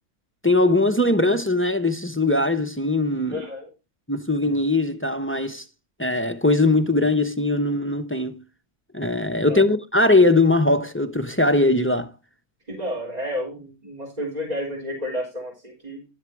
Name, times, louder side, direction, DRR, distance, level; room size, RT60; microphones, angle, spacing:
voice 1, 0.4-3.4 4.1-5.6 6.0-8.4 8.9-12.1, left 2 dB, 10° left, 0.8 m, -20 dB
voice 2, 3.3-3.7 9.4-9.6 12.7-16.1, equal, 30° right, 4.2 m, -31 dB
12.0 x 7.4 x 4.7 m
omnidirectional pair, 1.4 m